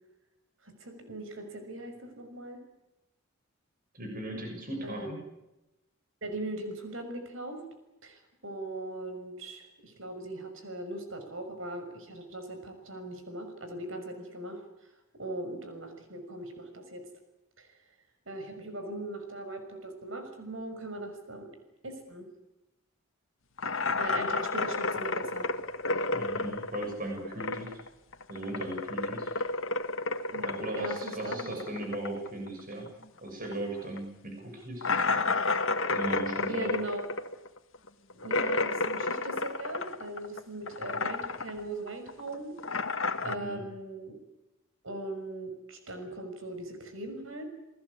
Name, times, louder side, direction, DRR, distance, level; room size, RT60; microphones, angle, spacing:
voice 1, 0.6-2.6 4.8-5.1 6.2-7.6 8.0-14.6 15.1-17.1 17.6-17.7 18.3-21.5 21.8-22.3 23.7-25.5 30.3-30.5 30.8-31.5 36.5-37.1 38.2-42.5 43.2-44.2 44.8-47.4, right 2 dB, 70° right, 6 dB, 6.1 m, -40 dB
voice 2, 3.9-5.2 26.1-27.8 28.3-29.3 30.3-32.9 33.2-34.9 35.9-36.7 43.2-43.6, right 1 dB, 40° right, 2 dB, 6.9 m, -37 dB
sound 1, 23.6-27.9 28.1-33.2 33.5-33.6 34.0-34.1 34.8-40.4 40.7-41.6 41.9-43.4, left 3 dB, 70° left, 1.7 m, -31 dB
29.0 x 20.0 x 8.5 m, 0.95 s
head